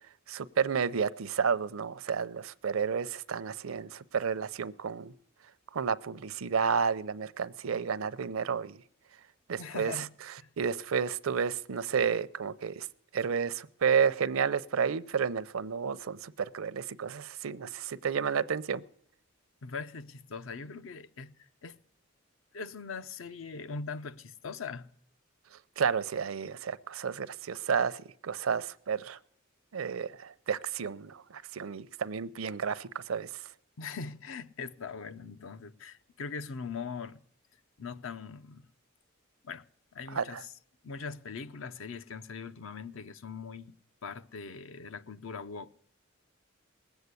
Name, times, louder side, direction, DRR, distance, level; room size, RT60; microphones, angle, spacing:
voice 1, 0.3-5.1 5.7-8.8 9.5-10.0 10.6-12.9 13.1-18.8 25.8-29.2 29.7-33.3 40.2-40.4, right 6 dB, 75° right, 0.6 m, -31 dB
voice 2, 9.6-10.1 10.4-10.5 19.6-21.3 21.6-21.8 22.5-24.9 33.8-37.2 37.8-38.6 39.4-39.6 39.9-40.5 40.8-43.7 44.0-45.7, left 5 dB, 70° left, 0.6 m, -41 dB
19.5 x 8.0 x 8.2 m
head